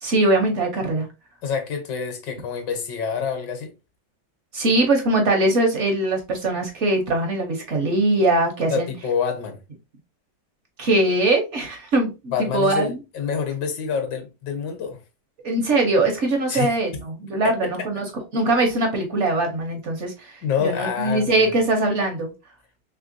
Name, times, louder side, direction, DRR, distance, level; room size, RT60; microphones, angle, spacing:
voice 1, 0.0-1.1 4.5-8.9 10.8-12.9 15.4-18.0 18.3-22.3, right 2 dB, 60° right, 0.7 m, -21 dB
voice 2, 1.4-3.7 8.7-9.6 12.3-15.0 16.5-16.8 17.4-17.9 20.4-21.5, left 6 dB, 75° left, 1.5 m, -27 dB
3.4 x 3.1 x 2.5 m
omnidirectional pair, 2.0 m